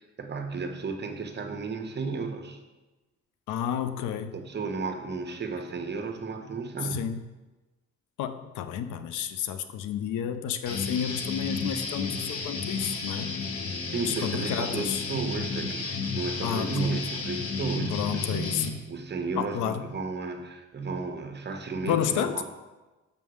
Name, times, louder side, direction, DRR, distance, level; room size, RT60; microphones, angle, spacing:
voice 1, 0.0-2.6 4.3-7.1 13.8-18.5 18.9-22.4, right 4 dB, 35° right, 5 dB, 1.0 m, -33 dB
voice 2, 3.5-4.4 6.9-7.2 8.2-13.3 14.0-15.0 16.4-17.1 17.9-18.9 19.4-19.8 21.8-22.4, left 9 dB, 85° left, 11 dB, 0.6 m, -31 dB
Guitar, 10.6-18.7, left 4 dB, 50° left, 1.0 m, -32 dB
6.8 x 3.7 x 6.2 m, 1.1 s
cardioid pair, 90°, 30 cm